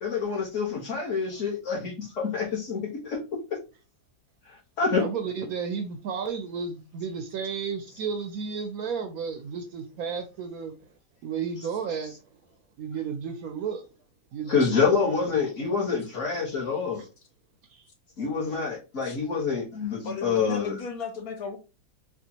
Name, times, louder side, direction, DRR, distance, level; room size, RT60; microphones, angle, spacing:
voice 1, 0.0-3.2 4.8-5.0 14.5-17.0 18.2-20.8, left 5 dB, 50° left, 1.5 m, -27 dB
voice 2, 4.9-10.7 11.2-12.2 12.8-13.9 14.3-15.0 17.0-17.1 17.7-17.9, right 6 dB, 70° right, 0.9 m, -33 dB
voice 3, 20.0-21.6, left 5 dB, 65° left, 1.2 m, -36 dB
4.3 x 2.4 x 2.8 m
omnidirectional pair, 1.8 m